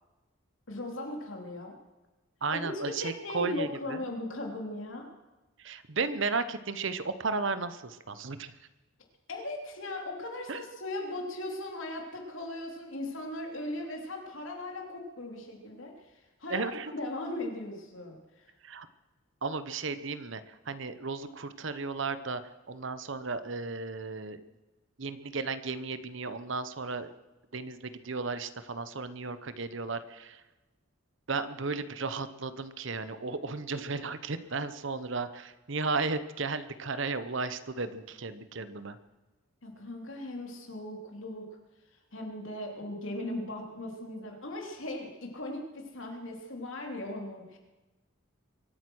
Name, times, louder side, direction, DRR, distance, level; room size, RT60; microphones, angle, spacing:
voice 1, 0.7-1.7 2.5-5.1 9.3-18.5 39.6-41.6 42.1-47.6, left 1 dB, 65° left, 2 dB, 3.2 m, -38 dB
voice 2, 2.4-4.0 5.6-8.5 10.5-10.6 16.5-16.9 18.6-18.9 19.4-22.4 22.7-24.4 25.0-27.1 27.5-30.4 31.3-39.0, right 4 dB, 60° right, 13 dB, 0.9 m, -34 dB
23.5 x 9.3 x 6.2 m, 1.1 s
head